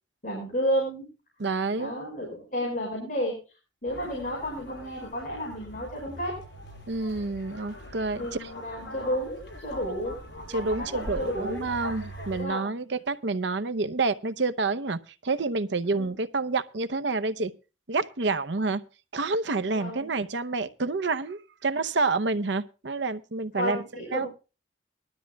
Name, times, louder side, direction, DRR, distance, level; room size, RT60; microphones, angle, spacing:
voice 1, 0.2-1.1 1.8-3.4 3.8-6.4 8.1-10.2 10.5-11.6 12.3-12.6 16.0-16.1 19.8-20.1 23.6-24.3, equal, 45° left, 5.3 m, -31 dB
voice 2, 1.4-2.0 6.9-8.5 10.5-17.5 17.9-18.8 19.1-23.8 24.1-24.3, right 3 dB, 65° right, 0.8 m, -28 dB
sound 1, 3.9-12.4, left 1 dB, 65° left, 7.3 m, -42 dB
20.0 x 12.5 x 2.3 m
head